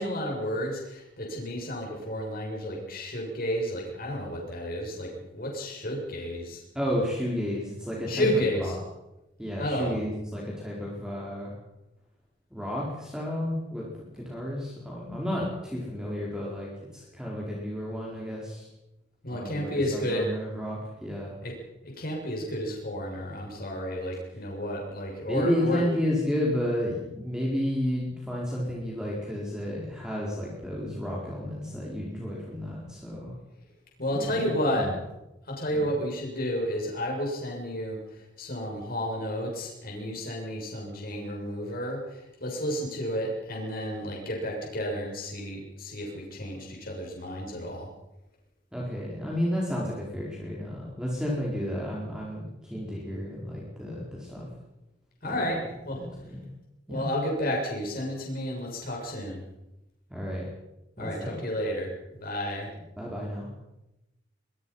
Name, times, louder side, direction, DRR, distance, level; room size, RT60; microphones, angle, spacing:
voice 1, 0.0-6.6 8.1-8.8 9.6-10.0 19.2-20.3 21.4-21.5 21.8-25.8 34.0-34.9 35.5-47.9 55.2-55.6 55.8-56.0 56.9-59.5 61.0-61.9 62.2-62.7, equal, 55° left, -1 dB, 7.1 m, -31 dB
voice 2, 6.7-8.7 9.4-11.5 12.5-13.9 14.1-18.7 19.3-21.3 25.3-33.4 34.1-35.0 35.7-35.9 48.7-54.5 55.2-55.6 55.9-56.4 56.9-57.0 60.1-60.5 61.0-61.4 63.0-63.5, equal, 5° right, -4 dB, 4.5 m, -32 dB
24.0 x 22.0 x 5.7 m, 0.94 s
head